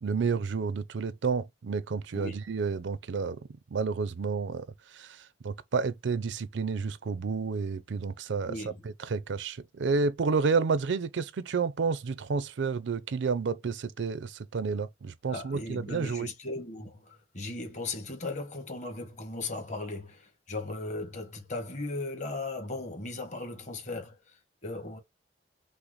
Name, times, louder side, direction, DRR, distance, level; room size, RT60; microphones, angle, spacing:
voice 1, 0.0-3.4 3.7-4.6 4.9-8.5 9.0-16.3, right 5 dB, 70° right, 0.4 m, -30 dB
voice 2, 8.4-8.8 15.3-24.2 24.6-25.0, left 2 dB, 40° left, 1.3 m, -37 dB
5.8 x 2.0 x 3.9 m
head